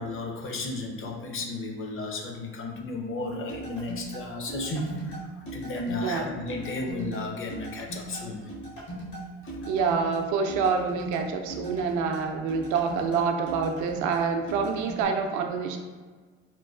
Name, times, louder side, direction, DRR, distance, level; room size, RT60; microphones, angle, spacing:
voice 1, 0.0-8.5 9.4-9.5, left 2 dB, 40° left, 2 dB, 0.6 m, -34 dB
sound 1, 3.5-15.0, right 1 dB, 70° left, 1.3 m, -39 dB
voice 2, 9.6-15.8, right 5 dB, 65° right, 4 dB, 0.5 m, -27 dB
3.0 x 2.3 x 2.4 m, 1.5 s
supercardioid pair, 70°, 33 cm